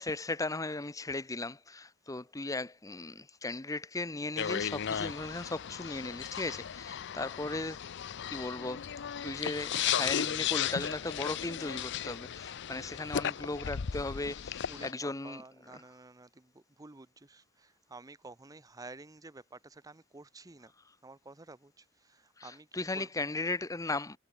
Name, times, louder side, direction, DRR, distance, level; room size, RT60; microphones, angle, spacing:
voice 1, 0.0-7.8 8.3-8.9 9.2-15.4 22.4-24.2, left 2 dB, 15° left, 0.8 m, -37 dB
sound 1, 4.4-14.9, left 9 dB, 55° left, 0.5 m, -35 dB
voice 2, 14.7-20.7 21.0-23.1, right 3 dB, 15° right, 0.7 m, -51 dB
head